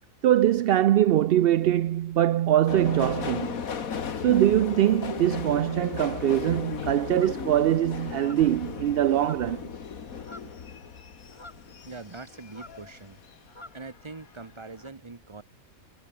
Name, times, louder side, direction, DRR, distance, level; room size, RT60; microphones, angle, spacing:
voice 1, 0.2-3.6 4.2-9.6, right 12 dB, 65° right, 0.6 m, -23 dB
Subway metro underground, 2.7-13.4 13.8-14.5 14.7-14.9, left 6 dB, 80° left, 2.0 m, -36 dB
sound 1, 7.1-7.4 8.1-8.6 9.1-9.7 9.9-10.6 11.3-12.2 12.5-12.9 13.5-13.9 14.8-14.9, left 2 dB, 20° left, 2.2 m, -48 dB
voice 2, 11.9-13.2 13.7-15.4, right 3 dB, 20° right, 1.3 m, -42 dB
omnidirectional pair, 1.4 m